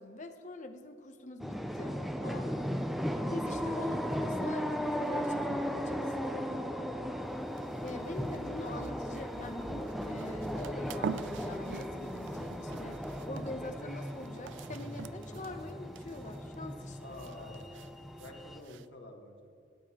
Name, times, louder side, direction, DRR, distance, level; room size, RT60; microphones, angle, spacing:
voice 1, 0.0-2.7 3.3-6.2 7.8-17.2, left 2 dB, 40° left, 7 dB, 0.7 m, -44 dB
sound 1, 1.4-18.6, equal, ahead, 0.4 m, -36 dB
voice 2, 6.9-7.2 17.0-17.8 18.2-19.5, left 1 dB, 65° left, 1 dB, 1.5 m, -49 dB
sound 2, 7.3-18.9, right 6 dB, 75° right, 0.3 m, -47 dB
13.5 x 9.3 x 2.9 m, 2.4 s
head